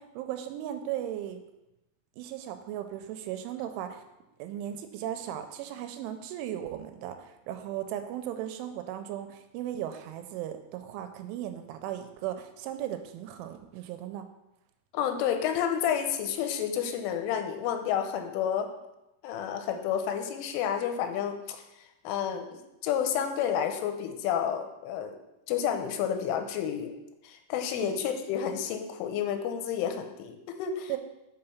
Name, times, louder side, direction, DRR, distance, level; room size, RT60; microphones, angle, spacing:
voice 1, 0.0-1.4 2.2-4.0 4.4-14.3 27.8-28.0 30.9-31.0, right 11 dB, 85° right, 8 dB, 3.0 m, -37 dB
voice 2, 14.9-18.7 19.2-21.6 22.0-25.2 25.5-26.9 27.2-31.0, left 8 dB, 85° left, 6 dB, 3.2 m, -30 dB
6.6 x 5.6 x 5.7 m, 0.93 s
omnidirectional pair, 5.6 m